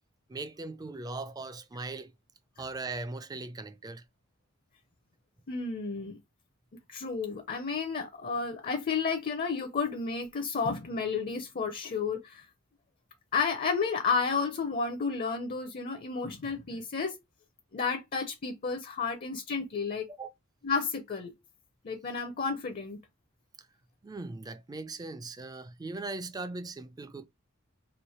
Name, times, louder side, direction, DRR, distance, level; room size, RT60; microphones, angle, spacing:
voice 1, 0.3-2.1 2.6-4.0 20.2-20.3 24.0-27.2, right 3 dB, 20° right, 0.4 m, -39 dB
voice 2, 5.5-6.2 6.9-12.4 13.3-17.2 17.7-20.1 20.6-21.3 21.8-23.0, left 5 dB, 40° left, 0.5 m, -31 dB
3.1 x 2.5 x 4.2 m
head